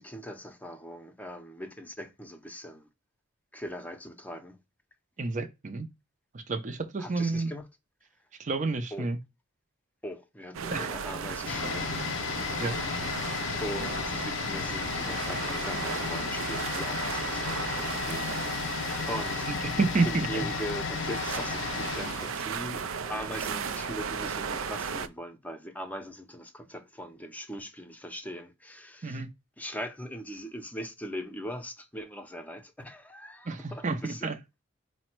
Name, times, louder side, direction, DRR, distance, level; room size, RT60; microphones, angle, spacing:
voice 1, 0.0-2.9 3.5-4.6 7.0-7.7 8.9-9.1 10.0-11.9 13.6-18.8 19.1-19.5 20.0-29.2 29.6-34.3, equal, 10° left, 0.6 m, -40 dB
voice 2, 5.2-5.9 6.3-7.5 8.4-9.2 10.7-10.9 12.6-12.8 19.5-20.5 29.0-29.3 33.5-34.4, right 3 dB, 40° right, 0.6 m, -30 dB
sound 1, 10.5-25.1, right 6 dB, 85° right, 0.4 m, -35 dB
sound 2, 11.5-23.2 23.5-23.6, left 7 dB, 65° left, 0.4 m, -34 dB
4.9 x 2.1 x 4.3 m
head